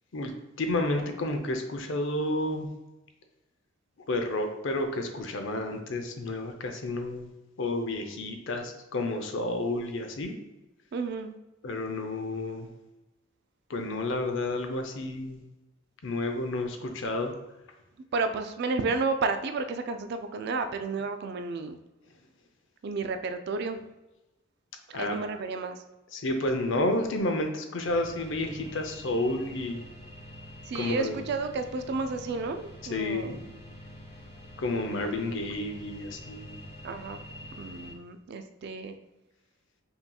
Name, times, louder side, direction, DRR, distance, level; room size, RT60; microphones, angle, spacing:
voice 1, 0.6-2.7 4.1-7.3 7.6-10.3 11.6-12.7 13.7-15.4 16.0-17.3 24.9-25.2 26.1-29.8 30.7-31.2 32.9-33.3 34.6-36.6, left 2 dB, 65° left, 5 dB, 0.6 m, -30 dB
voice 2, 10.9-11.4 18.1-21.8 22.8-23.8 24.9-25.8 30.7-33.4 36.8-37.2 37.6-39.0, right 4 dB, 55° right, 8 dB, 0.3 m, -32 dB
sound 1, 27.9-37.9, equal, 30° left, 1.1 m, -46 dB
5.6 x 2.8 x 2.3 m, 1.0 s
head